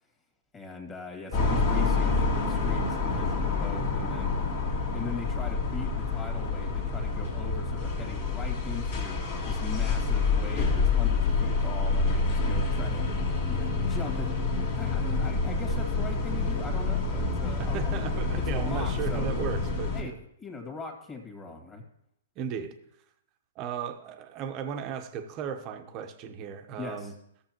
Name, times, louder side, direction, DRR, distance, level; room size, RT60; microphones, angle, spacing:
voice 1, 0.5-9.2 9.4-13.1 13.5-14.3 14.8-17.9 18.3-19.3 19.9-21.8 26.8-27.1, left 4 dB, 15° left, 2.0 m, -40 dB
sound 1, 1.3-20.0, left 4 dB, 50° left, 2.1 m, -27 dB
voice 2, 17.6-20.2 22.4-22.8 23.6-27.1, right 8 dB, 35° right, 0.9 m, -36 dB
15.5 x 6.8 x 3.0 m
hypercardioid pair, 135°, 0 cm